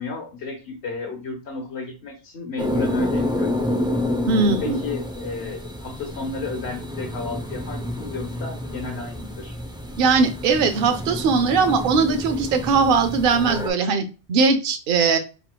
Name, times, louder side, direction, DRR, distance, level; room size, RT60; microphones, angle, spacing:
voice 1, 0.0-3.6 4.4-9.6, left 4 dB, 75° left, 3 dB, 1.5 m, -33 dB
sound 1, 2.6-13.7, left 1 dB, 10° right, 0.3 m, -29 dB
voice 2, 4.3-4.8 10.0-15.2, right 4 dB, 60° right, 8 dB, 0.8 m, -20 dB
4.5 x 3.6 x 2.2 m, 0.30 s
omnidirectional pair, 1.1 m